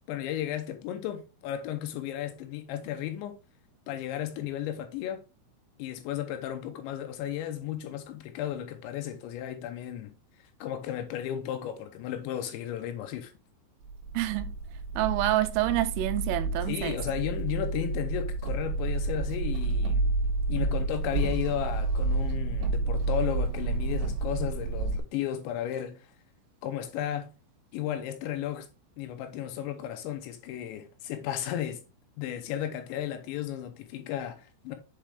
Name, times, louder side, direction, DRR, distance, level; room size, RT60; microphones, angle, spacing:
voice 1, 0.1-3.4 3.9-5.2 5.8-10.1 10.6-13.3 16.7-20.1 20.5-26.1 26.6-27.3 27.7-28.7 29.0-31.8 32.2-34.8, left 11 dB, 80° left, 2.7 m, -34 dB
sound 1, 13.8-25.0, right 3 dB, 65° right, 2.6 m, -30 dB
voice 2, 14.1-14.5 15.0-17.0, right 15 dB, 85° right, 3.2 m, -27 dB
7.5 x 4.5 x 3.3 m
omnidirectional pair, 5.8 m